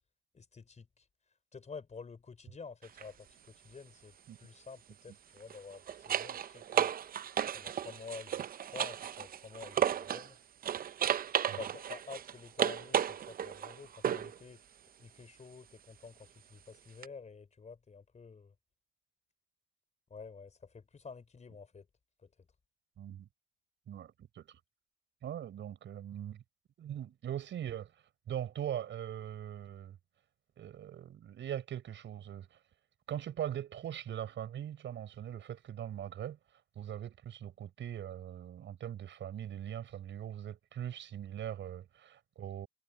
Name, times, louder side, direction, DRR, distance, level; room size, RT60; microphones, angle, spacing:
voice 1, 0.3-1.0 1.5-6.9 7.5-10.4 11.6-14.6 15.0-18.5 20.1-21.9 22.2-22.3, left 5 dB, 35° left, 4.4 m, -49 dB
sound 1, 2.8-3.1 5.4-10.3 10.6-14.4 17.0-17.1, right 9 dB, 50° right, 0.6 m, -34 dB
voice 2, 23.0-23.3 23.9-24.6 25.2-26.4 26.8-27.9 28.3-30.0 30.6-32.6 33.1-36.4 36.7-42.7, right 10 dB, 70° right, 6.4 m, -41 dB
cardioid pair, 90°, 20 cm